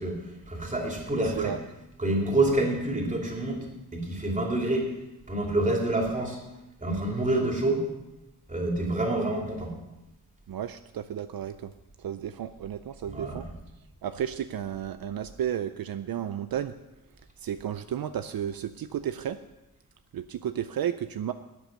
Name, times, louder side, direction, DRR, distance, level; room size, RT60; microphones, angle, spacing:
voice 1, 0.0-1.6 2.0-4.9 5.3-6.4 6.8-7.9 8.5-9.7 13.1-13.4, right 2 dB, 20° right, 0 dB, 2.7 m, -27 dB
voice 2, 1.2-1.6 10.5-11.7 12.0-13.4 14.0-16.7 17.4-19.4 20.1-21.3, right 9 dB, 75° right, 11 dB, 0.6 m, -33 dB
12.5 x 9.2 x 6.9 m, 0.98 s
wide cardioid pair, 135°, 36 cm